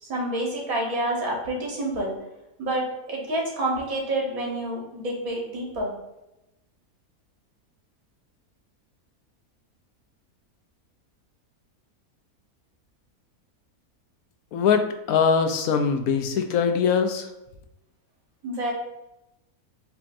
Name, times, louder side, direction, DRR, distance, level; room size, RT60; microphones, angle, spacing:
voice 1, 0.0-2.2 2.6-5.9 18.4-18.7, right 1 dB, 70° right, -3 dB, 1.7 m, -28 dB
voice 2, 14.5-17.3, left 6 dB, 75° left, 6 dB, 1.1 m, -22 dB
7.0 x 2.9 x 2.5 m, 0.93 s
omnidirectional pair, 1.6 m